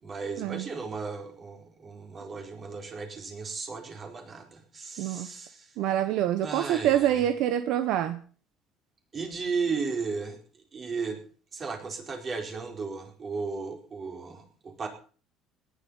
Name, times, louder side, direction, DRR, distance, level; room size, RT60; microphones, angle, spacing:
voice 1, 0.0-5.7 6.4-7.2 9.1-10.4 10.7-11.2 11.5-14.9, right 4 dB, 30° right, 3 dB, 4.6 m, -35 dB
voice 2, 5.0-5.3 5.8-8.2, right 11 dB, 65° right, 10 dB, 1.2 m, -26 dB
18.0 x 11.5 x 5.7 m, 0.42 s
cardioid pair, 135°, 0 cm